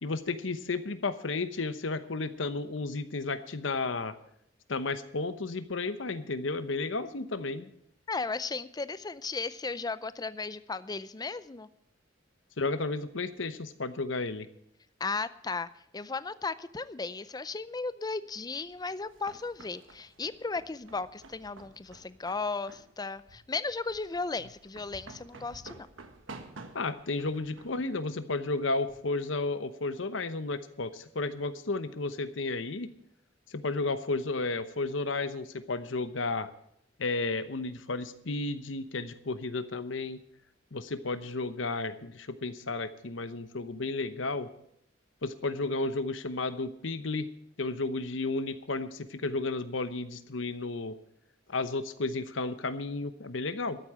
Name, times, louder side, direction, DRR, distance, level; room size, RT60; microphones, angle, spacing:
voice 1, 0.0-4.2 4.7-7.7 12.6-14.5 26.7-32.9 33.5-36.5 37.0-40.2 40.7-44.5 45.2-47.3 47.6-51.0 51.5-53.8, left 3 dB, 70° left, 12 dB, 1.0 m, -33 dB
voice 2, 8.1-11.7 15.0-25.9, left 4 dB, 20° left, 15 dB, 0.5 m, -35 dB
sound 1, 18.7-29.1, right 3 dB, 85° right, 1.5 m, -51 dB
13.5 x 8.5 x 7.6 m, 0.72 s
head